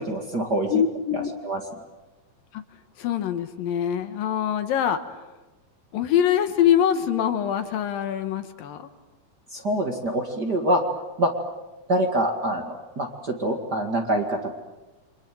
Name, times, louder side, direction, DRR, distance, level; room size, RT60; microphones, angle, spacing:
voice 1, 0.0-0.8 1.1-1.6 9.5-10.8 11.2-11.3 11.9-14.5, right 1 dB, 35° right, 3 dB, 2.0 m, -25 dB
voice 2, 0.7-1.3 2.5-2.6 3.0-5.0 5.9-8.9, left 9 dB, 75° left, 9 dB, 2.9 m, -24 dB
30.0 x 25.5 x 7.7 m, 1.1 s
omnidirectional pair, 4.3 m